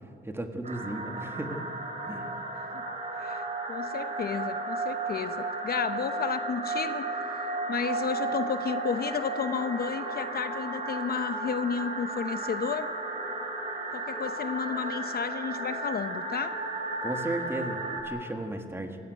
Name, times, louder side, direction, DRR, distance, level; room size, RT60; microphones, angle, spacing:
voice 1, 0.3-1.7 2.1-2.4 17.0-19.0, right 1 dB, 10° right, 5 dB, 1.7 m, -35 dB
sound 1, 0.6-18.0, right 2 dB, 35° right, 3.8 m, -34 dB
voice 2, 3.2-12.9 13.9-16.6, left 6 dB, 50° left, 11 dB, 0.8 m, -32 dB
27.0 x 14.5 x 9.3 m, 2.5 s
wide cardioid pair, 165°, 19 cm